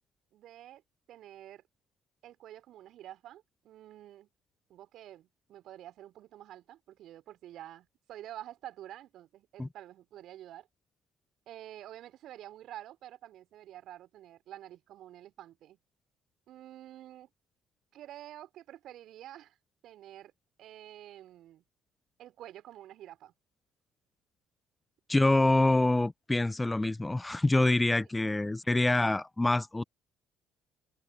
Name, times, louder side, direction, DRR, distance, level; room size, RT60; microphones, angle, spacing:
voice 1, 0.3-0.8 1.1-1.6 2.2-4.3 4.7-10.7 11.5-15.8 16.5-17.3 17.9-19.6 19.8-20.3 20.6-21.6 22.2-23.3 25.2-25.7, right 13 dB, 60° right, 3.9 m, -48 dB
voice 2, 25.1-29.8, left 2 dB, 15° left, 0.3 m, -26 dB
hypercardioid pair, 55°, 0 cm